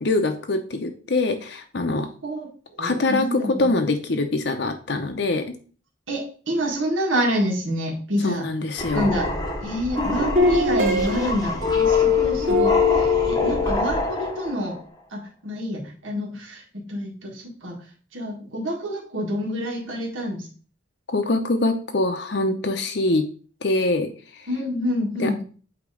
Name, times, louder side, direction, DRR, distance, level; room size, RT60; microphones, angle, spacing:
voice 1, 0.0-2.1 2.8-5.4 8.2-9.1 21.1-23.2 23.6-24.1 24.4-24.5 25.2-25.4, left 2 dB, 60° left, 5 dB, 0.7 m, -24 dB
voice 2, 2.7-3.7 6.1-8.5 8.9-9.3 9.6-14.8 15.1-16.6 16.9-17.7 18.1-20.5 24.5-25.4, equal, 80° right, -1 dB, 1.8 m, -27 dB
sound 1, 8.8-14.8, left 1 dB, 20° left, 0.8 m, -28 dB
sound 2, 9.1-9.5 10.0-14.3, left 5 dB, 40° right, 2.1 m, -22 dB
8.3 x 2.9 x 4.9 m, 0.40 s
head